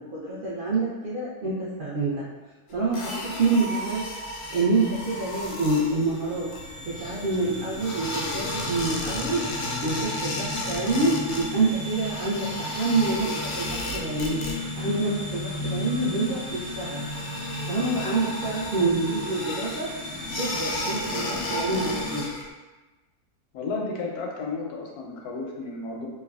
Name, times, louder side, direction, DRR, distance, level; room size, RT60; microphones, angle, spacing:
voice 1, 0.1-2.3 2.7-3.1 3.4-4.0 4.5-6.5 6.8-9.4 9.8-14.4 14.8-17.0 17.7-19.9 20.4-22.2, right 3 dB, 85° right, -7 dB, 0.4 m, -27 dB
sound 1, 2.9-7.4 7.8-11.5 11.7-14.9 15.1-15.6 15.9-16.0 16.5-22.5, left 1 dB, 70° left, 0.7 m, -34 dB
sound 2, 4.3-22.2, left 1 dB, 60° right, 1.5 m, -35 dB
voice 2, 23.5-26.1, left 3 dB, 85° left, -1 dB, 1.1 m, -32 dB
3.3 x 2.2 x 2.3 m, 1.1 s
omnidirectional pair, 1.6 m